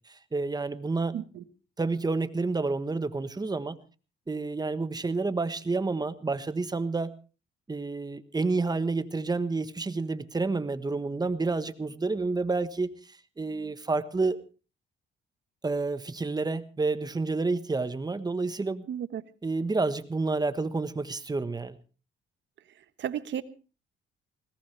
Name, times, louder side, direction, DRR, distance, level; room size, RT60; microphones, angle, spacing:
voice 1, 0.3-1.1 1.8-3.8 4.3-7.1 7.7-12.9 13.4-14.4 15.6-18.9 19.4-21.8, right 3 dB, 20° right, 12 dB, 1.3 m, -29 dB
voice 2, 1.1-1.4 18.9-19.2 23.0-23.4, right 9 dB, 65° right, 13 dB, 1.3 m, -33 dB
20.5 x 18.0 x 3.4 m, 0.35 s
cardioid pair, 90°, 20 cm